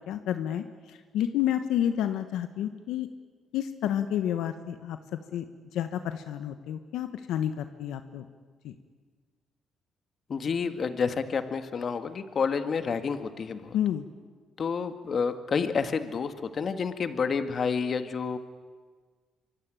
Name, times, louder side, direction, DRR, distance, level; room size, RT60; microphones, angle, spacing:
voice 1, 0.1-3.1 3.5-5.4 5.7-8.2 8.6-8.7 13.7-14.0, left 10 dB, 90° left, 9 dB, 1.2 m, -30 dB
voice 2, 10.3-13.7 14.6-18.4, left 5 dB, 50° left, 9 dB, 1.9 m, -29 dB
24.5 x 23.5 x 9.3 m, 1.5 s
cardioid pair, 90°, 0 cm